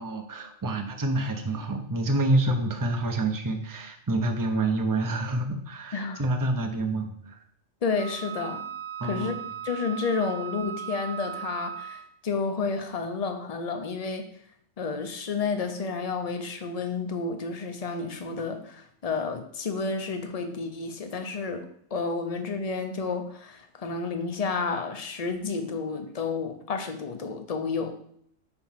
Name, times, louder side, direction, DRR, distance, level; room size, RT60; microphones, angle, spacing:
voice 1, 0.0-7.1 9.0-9.3, right 2 dB, 20° right, 4 dB, 0.6 m, -27 dB
voice 2, 7.8-8.6 9.0-9.3 9.6-14.3 14.8-21.7 21.9-27.9, left 4 dB, 35° left, 7 dB, 0.7 m, -31 dB
Wind instrument woodwind instrument, 8.0-12.2, right 9 dB, 80° right, 1.1 m, -37 dB
4.8 x 4.5 x 5.6 m, 0.67 s
omnidirectional pair, 1.3 m